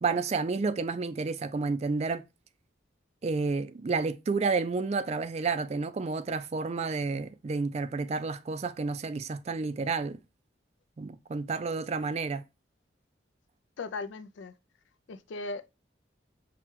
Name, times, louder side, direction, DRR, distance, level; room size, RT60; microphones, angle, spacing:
voice 1, 0.0-2.2 3.2-10.2 11.0-12.4, right 4 dB, 35° right, 0.3 m, -30 dB
voice 2, 13.8-14.5 15.1-15.7, left 3 dB, 75° left, 0.4 m, -38 dB
6.0 x 2.3 x 2.8 m
head